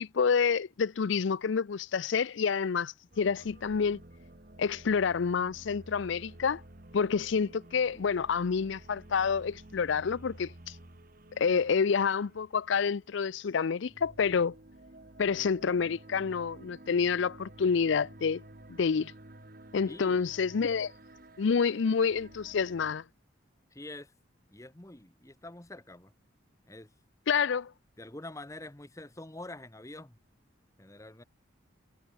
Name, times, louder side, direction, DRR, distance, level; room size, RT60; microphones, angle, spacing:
voice 1, 0.0-4.0 4.6-6.6 6.9-10.7 11.4-14.5 15.2-18.4 18.7-19.1 19.7-20.9 21.4-23.0 27.3-27.7, left 6 dB, 70° left, 0.5 m, -28 dB
sound 1, 3.1-22.9, right 1 dB, 45° right, 1.8 m, -52 dB
voice 2, 19.9-20.2 23.7-24.1 24.5-26.1 26.7-26.9 28.0-30.2 30.8-31.2, left 2 dB, 15° left, 1.0 m, -46 dB
head